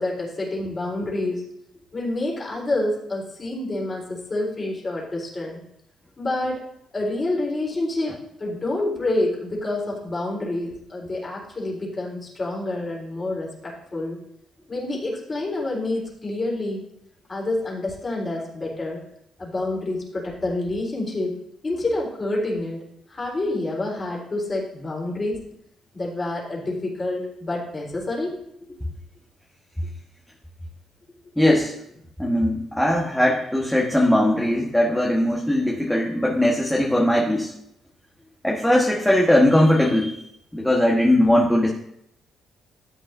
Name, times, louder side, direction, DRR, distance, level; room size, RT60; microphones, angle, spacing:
voice 1, 0.0-1.5 1.9-5.6 6.2-6.6 6.9-8.1 8.4-14.2 14.7-16.9 17.3-19.0 19.4-21.4 21.6-22.8 23.1-25.4 25.9-28.3, left 2 dB, 30° left, -4 dB, 4.0 m, -28 dB
voice 2, 31.4-31.8 32.2-37.5 38.4-40.1 40.5-41.7, left 1 dB, 5° left, -2 dB, 1.3 m, -19 dB
13.0 x 8.5 x 2.7 m, 0.74 s
cardioid pair, 90°, 0 cm